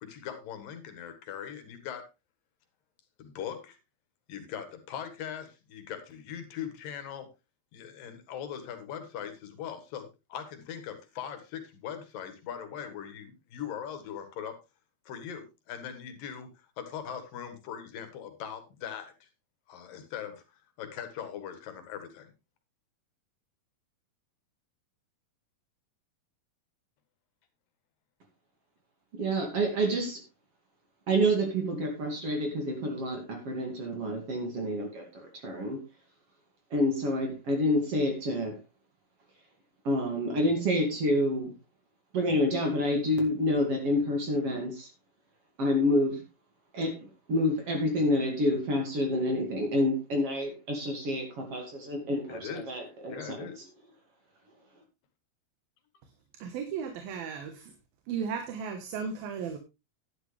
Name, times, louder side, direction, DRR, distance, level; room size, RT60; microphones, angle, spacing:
voice 1, 0.0-2.1 3.2-3.8 4.3-7.3 7.7-14.6 15.1-19.3 19.7-22.3 52.3-52.8 53.1-53.6, left 8 dB, 75° left, 8 dB, 3.3 m, -40 dB
voice 2, 29.2-30.2 31.1-35.8 36.7-38.6 39.8-41.5 42.1-44.9 45.6-46.2 46.7-53.5, equal, 45° right, 3 dB, 2.9 m, -28 dB
voice 3, 56.4-57.7 58.1-59.6, right 6 dB, 90° right, 6 dB, 3.1 m, -35 dB
11.0 x 11.0 x 3.3 m, 0.26 s
omnidirectional pair, 4.1 m